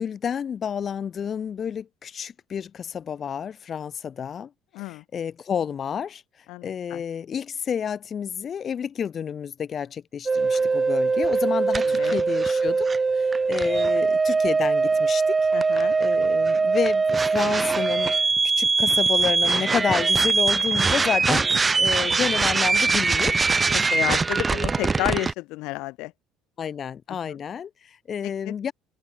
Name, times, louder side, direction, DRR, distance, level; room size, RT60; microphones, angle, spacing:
voice 1, 0.0-4.5 4.8-6.2 6.6-12.9 13.1-15.4 16.0-18.1 18.6-23.4 26.6-28.7, left 8 dB, 45° left, 6.2 m, -30 dB
voice 2, 4.7-5.0 6.5-7.0 11.9-12.2 15.5-15.9 23.7-26.1 27.1-27.4 28.5-28.6, left 22 dB, 70° left, 6.2 m, -31 dB
sound 1, 10.3-25.3, right 4 dB, 25° right, 3.2 m, -22 dB
supercardioid pair, 75°, 0 cm